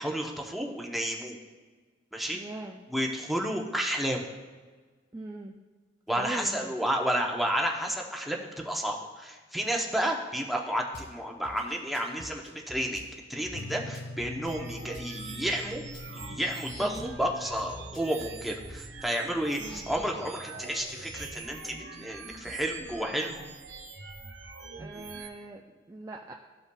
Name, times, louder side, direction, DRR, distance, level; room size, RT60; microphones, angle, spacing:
voice 1, 0.0-1.4 2.1-2.4 2.9-4.3 6.1-15.8 16.1-23.3, equal, ahead, 0 dB, 0.7 m, -31 dB
voice 2, 2.3-2.8 5.1-5.6 6.2-6.8 16.8-17.1 19.6-19.9 24.8-26.3, right 2 dB, 20° right, 1 dB, 0.3 m, -41 dB
Drum kit / Bass drum, 10.9-11.1 11.4-13.1 13.4-15.1 15.4-17.1 17.6-18.8, left 1 dB, 70° left, 1.8 m, -48 dB
sound 1, 13.5-21.2, left 1 dB, 85° left, 0.8 m, -45 dB
sound 2, 14.5-25.3, right 4 dB, 70° right, 0.9 m, -44 dB
13.5 x 5.6 x 2.3 m, 1.4 s
head